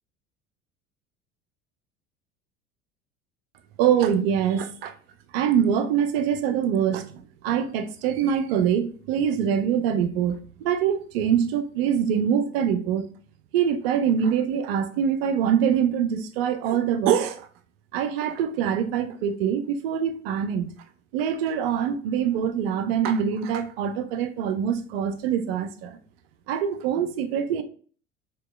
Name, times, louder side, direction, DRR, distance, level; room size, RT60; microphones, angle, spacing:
voice 1, 3.8-4.9 5.3-13.1 13.5-17.5 17.9-20.7 21.1-26.0 26.5-27.6, right 8 dB, 50° right, 0.5 m, -24 dB
4.5 x 2.3 x 2.2 m
figure-of-eight pair, 70°, 39 cm